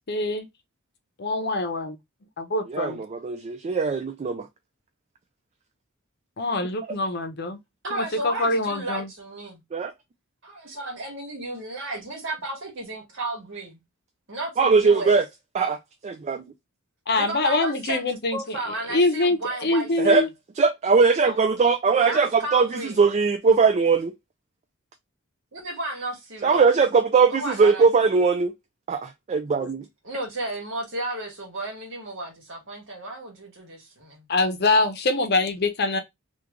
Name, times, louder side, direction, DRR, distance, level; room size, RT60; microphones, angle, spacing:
voice 1, 0.1-0.5 1.2-2.0 2.4-3.0 6.4-7.6 7.9-9.1 17.1-18.6 18.9-20.3 21.2-21.3 34.3-36.0, left 2 dB, 50° left, 0.7 m, -24 dB
voice 2, 2.7-4.5 9.7-9.9 14.6-15.2 15.5-15.8 16.0-16.4 20.0-20.2 20.6-24.1 26.4-28.5 28.9-29.8, right 4 dB, 30° right, 0.3 m, -20 dB
voice 3, 7.8-9.6 10.4-13.8 14.3-15.1 17.2-18.0 18.3-20.3 22.1-23.0 25.5-26.7 27.3-27.9 30.0-34.3, right 2 dB, 60° right, 1.5 m, -33 dB
3.0 x 2.4 x 3.5 m
head